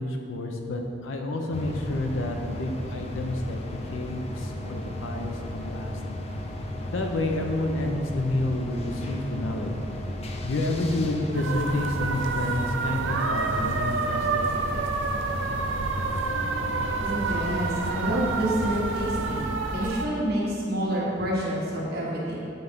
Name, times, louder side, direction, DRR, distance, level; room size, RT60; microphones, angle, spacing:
voice 1, 0.0-6.0 6.9-9.8 10.4-14.5 14.7-15.0, left 1 dB, 90° left, 3 dB, 0.7 m, -29 dB
sound 1, 1.5-19.4, left 1 dB, 35° left, 0.4 m, -35 dB
sound 2, 11.3-20.1, right 4 dB, 75° right, 0.4 m, -29 dB
voice 2, 17.0-22.4, right 1 dB, 55° right, -5 dB, 1.3 m, -28 dB
7.9 x 4.0 x 3.6 m, 2.7 s
head